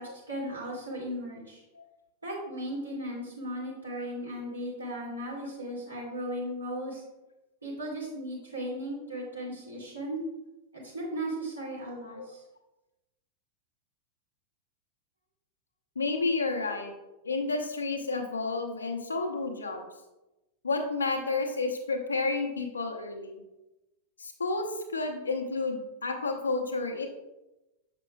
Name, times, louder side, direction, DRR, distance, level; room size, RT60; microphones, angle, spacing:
voice 1, 0.0-1.6 2.2-7.0 7.6-10.2 10.7-12.4, right 1 dB, 80° right, -6 dB, 2.2 m, -36 dB
voice 2, 16.0-16.9 17.2-19.8 20.6-23.4 24.2-27.1, left 3 dB, 75° left, 4 dB, 0.7 m, -31 dB
6.9 x 6.0 x 2.3 m, 1.0 s
figure-of-eight pair, 90°, 0 cm